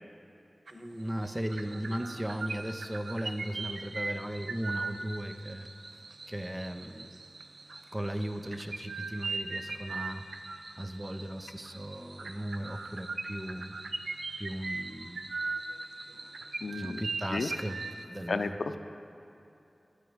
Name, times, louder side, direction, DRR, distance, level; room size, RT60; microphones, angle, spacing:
voice 1, 0.7-5.7 6.3-7.2 7.9-10.3 10.8-13.8 14.4-15.4 16.7-18.6, right 1 dB, 20° right, 8 dB, 0.7 m, -37 dB
sound 1, 0.7-0.9 1.2-18.0, right 3 dB, 90° right, 0.5 m, -40 dB
voice 2, 16.6-17.5 18.3-18.8, left 3 dB, 85° left, 8 dB, 0.5 m, -34 dB
13.0 x 4.9 x 8.9 m, 2.7 s
wide cardioid pair, 50°, 0 cm